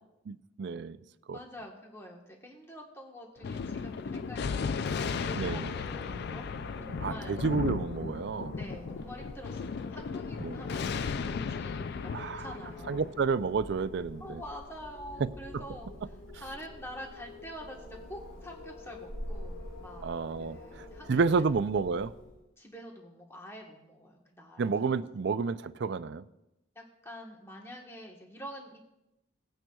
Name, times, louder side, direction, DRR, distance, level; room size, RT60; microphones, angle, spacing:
voice 1, 0.3-1.0 1.3-1.4 5.3-5.7 7.0-8.6 10.4-10.6 12.1-12.5 12.9-14.4 15.2-15.6 20.0-22.1 24.6-26.3, right 4 dB, 55° right, 0.4 m, -30 dB
voice 2, 1.3-7.5 8.5-13.2 14.2-15.9 16.3-20.1 20.4-21.5 22.6-24.7 26.7-28.9, equal, 10° left, 1.2 m, -47 dB
Wind, 3.4-22.4, left 1 dB, 75° left, 4.5 m, -46 dB
Thunder, 3.4-14.3, left 5 dB, 50° left, 0.3 m, -36 dB
18.5 x 8.9 x 2.3 m
head